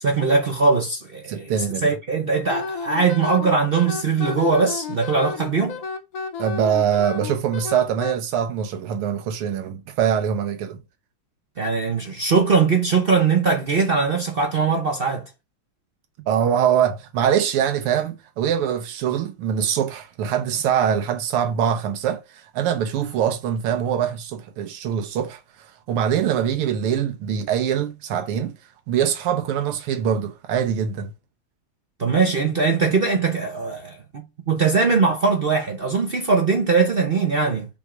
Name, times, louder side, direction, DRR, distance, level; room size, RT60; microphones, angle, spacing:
voice 1, 0.0-5.8 11.6-15.3 32.0-37.7, right 4 dB, 60° right, 0.5 m, -21 dB
voice 2, 1.3-1.9 6.4-10.8 16.3-28.5 28.9-31.1, right 9 dB, 90° right, 1.7 m, -23 dB
Wind instrument woodwind instrument, 2.5-8.2, left 4 dB, 60° left, 1.0 m, -31 dB
5.4 x 3.5 x 4.9 m
omnidirectional pair, 2.4 m